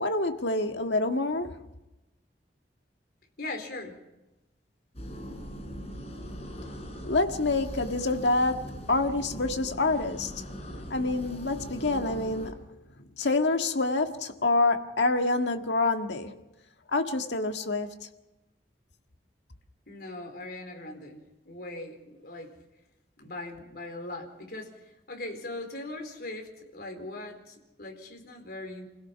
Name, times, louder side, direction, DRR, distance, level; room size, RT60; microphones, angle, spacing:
voice 1, 0.0-1.6 7.0-10.4 10.9-12.7 13.2-16.4 16.9-17.9, left 2 dB, 90° left, 1.8 m, -27 dB
voice 2, 3.4-4.0 19.9-22.5 23.2-28.9, left 2 dB, 60° left, 4.2 m, -40 dB
sound 1, 4.9-12.5, equal, 35° left, 4.8 m, -40 dB
28.5 x 17.0 x 5.9 m
head